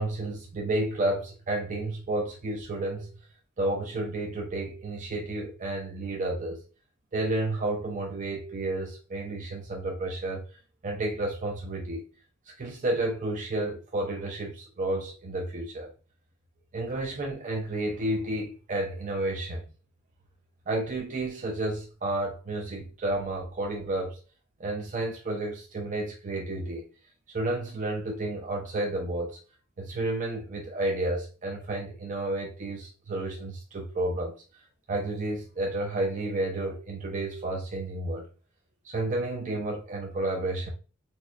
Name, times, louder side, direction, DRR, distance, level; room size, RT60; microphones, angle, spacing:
voice 1, 0.0-3.1 3.6-6.6 7.1-10.4 10.8-12.0 12.6-15.9 16.7-19.6 20.7-24.2 24.6-26.8 27.3-29.4 29.8-34.3 34.9-38.3 38.8-40.7, right 2 dB, 35° right, 0.5 m, -31 dB
4.2 x 2.2 x 2.4 m
head